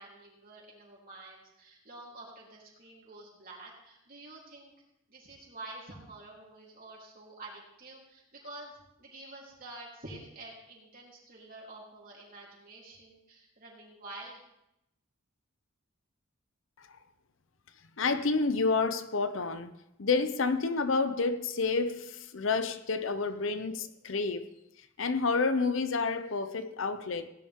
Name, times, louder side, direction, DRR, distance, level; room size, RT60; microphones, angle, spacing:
voice 1, 0.0-4.7 5.1-14.4, right 2 dB, 40° right, 3.5 m, -48 dB
voice 2, 18.0-19.7 20.0-24.5 25.0-27.3, left 4 dB, 65° left, 0.7 m, -29 dB
17.5 x 10.0 x 3.7 m
head